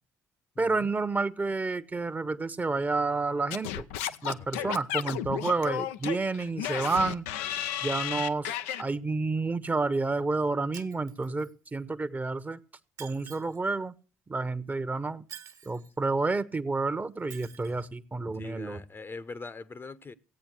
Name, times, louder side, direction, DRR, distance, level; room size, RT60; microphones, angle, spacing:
voice 1, 0.6-3.8 4.2-7.2 7.8-12.6 13.0-13.9 14.3-15.2 15.7-18.8, right 3 dB, 20° right, 1.0 m, -30 dB
Singing / Scratching (performance technique), 3.5-8.8, left 11 dB, 75° left, 0.6 m, -33 dB
voice 2, 4.4-4.7 18.3-20.1, left 3 dB, 30° left, 0.9 m, -42 dB
Shatter, 10.7-11.7 13.0-13.7 15.3-15.9 17.3-17.9, right 8 dB, 50° right, 1.6 m, -48 dB
16.5 x 8.8 x 6.6 m
hypercardioid pair, 50°, 7 cm